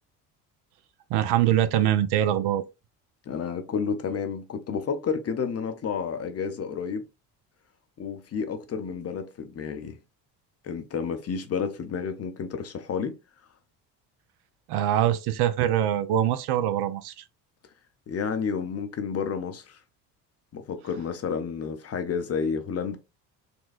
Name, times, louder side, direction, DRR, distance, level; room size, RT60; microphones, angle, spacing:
voice 1, 1.1-2.6 14.7-17.2, right 11 dB, 55° right, 0.6 m, -23 dB
voice 2, 3.3-7.1 8.0-10.0 10.6-13.2 18.1-19.8 20.5-23.0, left 6 dB, 30° left, 0.6 m, -30 dB
4.2 x 2.2 x 2.5 m
hypercardioid pair, 65°, 47 cm